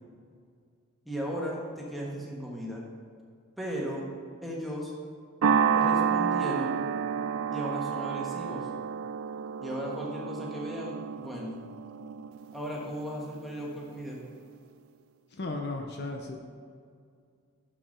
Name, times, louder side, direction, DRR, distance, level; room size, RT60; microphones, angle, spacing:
voice 1, 1.0-2.8 3.6-4.1 4.4-4.9 5.8-6.8 7.5-8.7 9.6-11.6 12.5-14.2, equal, ahead, -4 dB, 1.5 m, -36 dB
sound 1, 5.4-13.9, right 7 dB, 80° right, 0.5 m, -30 dB
voice 2, 15.3-16.4, left 2 dB, 50° left, 3 dB, 0.7 m, -35 dB
6.8 x 5.9 x 5.7 m, 2.2 s
head